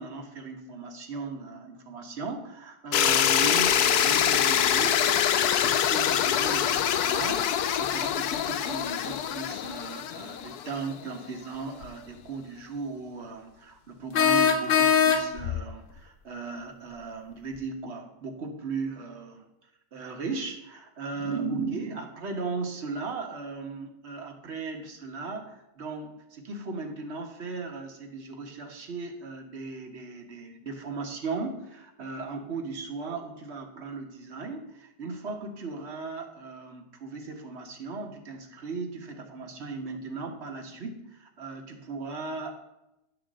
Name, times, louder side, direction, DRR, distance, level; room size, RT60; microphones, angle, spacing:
voice 1, 0.0-19.5 19.9-42.6, right 4 dB, 45° right, 3 dB, 1.5 m, -37 dB
sound 1, 2.9-10.9, left 9 dB, 80° left, 1.1 m, -25 dB
sound 2, 11.8-11.9 14.1-15.6, left 7 dB, 60° left, 0.6 m, -21 dB
11.0 x 3.8 x 7.5 m, 0.91 s
omnidirectional pair, 1.6 m